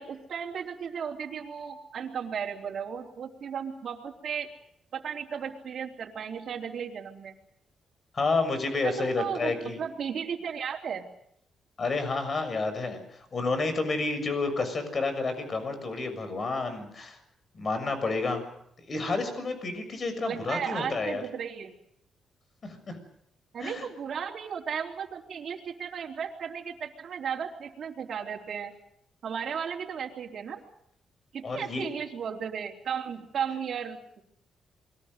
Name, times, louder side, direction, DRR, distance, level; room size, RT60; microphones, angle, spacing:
voice 1, 0.0-4.5 4.9-7.3 8.8-9.5 9.8-11.1 20.3-21.7 23.5-28.7 29.2-30.6 31.3-34.2, right 7 dB, 60° right, -2 dB, 3.7 m, -35 dB
voice 2, 8.1-9.8 11.8-17.2 17.5-18.4 18.9-21.2 22.6-23.0 23.6-23.9 31.4-31.8, left 3 dB, 40° left, 9 dB, 6.7 m, -30 dB
28.5 x 22.0 x 6.6 m, 0.73 s
cardioid pair, 90°, 0 cm